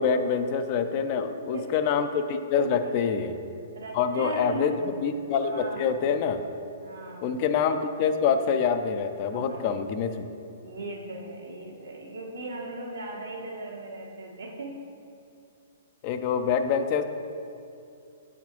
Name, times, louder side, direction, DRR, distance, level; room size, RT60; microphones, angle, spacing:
voice 1, 0.0-3.3 3.9-6.4 7.2-10.3 16.0-17.0, left 6 dB, 45° left, 8 dB, 0.4 m, -26 dB
voice 2, 1.1-1.7 2.8-3.0 3.7-5.0 5.4-6.0 6.8-7.4 9.3-9.7 10.6-14.8, right 2 dB, 80° right, -2 dB, 1.2 m, -38 dB
7.9 x 4.3 x 2.9 m, 2.6 s
hypercardioid pair, 120°, 0 cm